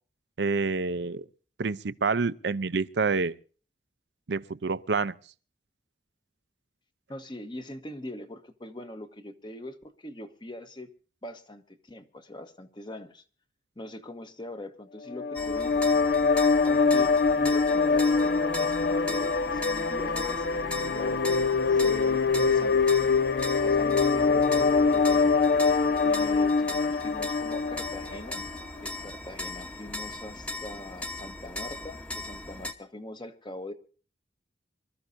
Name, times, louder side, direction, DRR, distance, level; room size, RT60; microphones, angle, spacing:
voice 1, 0.4-1.2 1.6-3.4 4.3-5.1, right 4 dB, 80° right, 0.6 m, -28 dB
voice 2, 7.1-10.9 11.2-13.2 13.8-15.9 16.6-21.4 21.7-23.0 23.6-25.3 26.0-28.4 28.8-33.7, left 1 dB, 25° left, 1.1 m, -42 dB
sound 1, 15.1-28.5, left 4 dB, 60° left, 0.6 m, -24 dB
sound 2, 15.4-32.7, left 2 dB, 5° left, 1.1 m, -38 dB
26.0 x 13.5 x 2.7 m
head